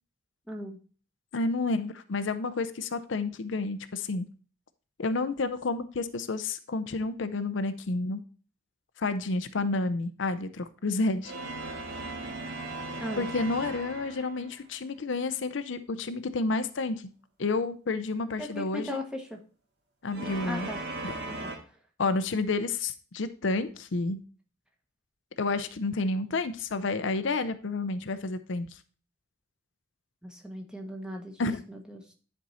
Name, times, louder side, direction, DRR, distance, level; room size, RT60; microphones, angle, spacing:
voice 1, 0.5-0.8 13.0-13.3 18.4-19.4 20.5-20.8 21.4-21.5 30.2-32.1, equal, 5° right, 2 dB, 1.1 m, -38 dB
voice 2, 1.3-4.3 5.0-8.2 9.0-11.3 13.2-17.1 17.4-19.0 20.0-20.7 21.0-21.1 22.0-24.2 25.4-28.7 31.4-31.6, left 3 dB, 65° left, 10 dB, 0.6 m, -30 dB
sound 1, 11.2-14.6 20.1-21.6, right 2 dB, 55° right, 1.5 m, -37 dB
10.0 x 4.5 x 4.2 m, 0.39 s
head